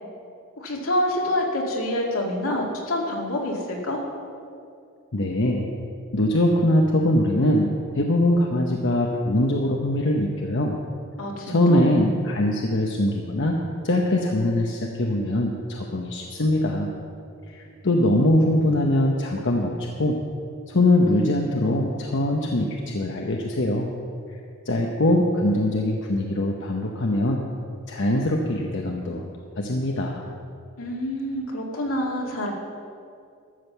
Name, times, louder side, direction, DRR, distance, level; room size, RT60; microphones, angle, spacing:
voice 1, 0.6-4.0 11.2-11.8 30.8-32.5, left 1 dB, 80° left, -1 dB, 2.2 m, -27 dB
voice 2, 5.1-5.7 6.1-10.7 11.5-13.6 13.8-16.9 17.5-20.2 20.7-23.9 24.7-27.4 27.9-29.3 29.6-30.3, left 1 dB, 60° left, 1 dB, 0.9 m, -22 dB
13.0 x 7.5 x 6.7 m, 2.4 s
head